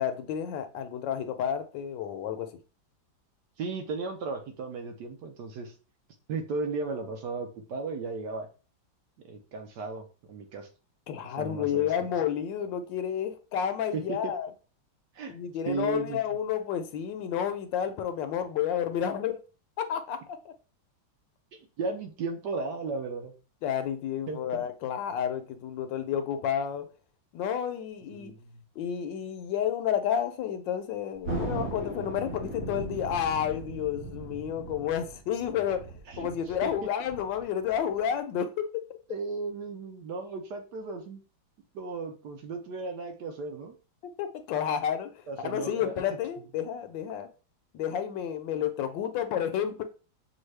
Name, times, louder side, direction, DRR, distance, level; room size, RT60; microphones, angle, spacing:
voice 1, 0.0-2.5 11.1-14.5 15.3-19.4 19.8-20.5 23.6-26.9 27.3-28.3 28.8-35.8 36.2-39.0 44.0-47.3 47.7-49.8, left 9 dB, 75° left, 1.2 m, -31 dB
voice 2, 3.6-5.7 6.3-8.5 9.3-10.7 11.4-11.9 13.9-14.4 15.1-15.4 15.7-16.2 21.8-23.3 24.3-24.6 28.0-28.6 36.1-36.3 36.6-36.7 39.1-41.2 41.7-43.7 45.3-46.0, right 4 dB, 65° right, 1.2 m, -35 dB
Thunder, 31.2-38.1, right 2 dB, 50° right, 3.1 m, -38 dB
6.2 x 2.2 x 3.2 m
omnidirectional pair, 2.1 m